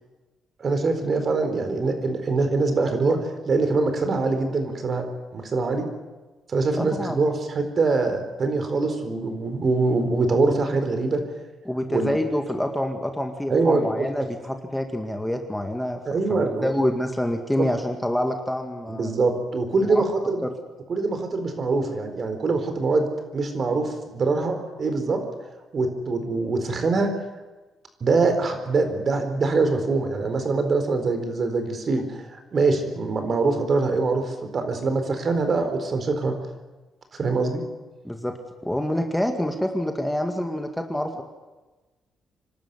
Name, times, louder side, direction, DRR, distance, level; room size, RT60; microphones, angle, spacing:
voice 1, 0.6-3.2 3.5-5.1 5.3-5.9 6.5-11.2 11.9-12.1 13.5-14.1 16.1-16.7 17.6-17.7 18.9-20.4 20.9-25.2 25.7-27.1 28.0-36.3 37.1-37.6, right 3 dB, 45° right, 7 dB, 4.3 m, -23 dB
voice 2, 6.8-7.2 11.7-19.1 19.8-20.0 20.4-20.5 38.0-38.4 38.6-41.2, left 1 dB, 5° left, 5 dB, 2.1 m, -27 dB
26.0 x 12.5 x 9.6 m, 1.2 s
cardioid pair, 90°, 0 cm